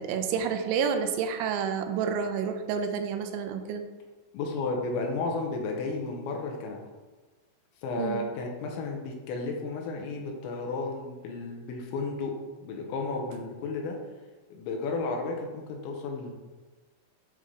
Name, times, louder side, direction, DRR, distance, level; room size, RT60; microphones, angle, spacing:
voice 1, 0.0-3.8 8.0-8.3, right 6 dB, 85° right, 6 dB, 2.9 m, -29 dB
voice 2, 4.3-6.8 7.8-12.3 12.6-14.0 14.5-16.3, left 3 dB, 85° left, 1 dB, 3.0 m, -33 dB
8.3 x 3.1 x 3.7 m, 1.2 s
omnidirectional pair, 5.4 m